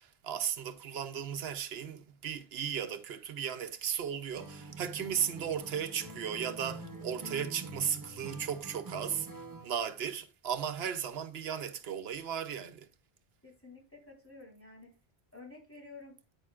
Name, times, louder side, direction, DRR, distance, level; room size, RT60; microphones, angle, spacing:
voice 1, 0.0-12.9, right 8 dB, 80° right, 0.9 m, -36 dB
Acoustic guitar, 4.4-9.8, right 3 dB, 20° right, 1.1 m, -45 dB
voice 2, 13.4-14.9 15.3-16.2, left 3 dB, 15° left, 3.7 m, -51 dB
9.7 x 8.9 x 2.4 m
omnidirectional pair, 1.0 m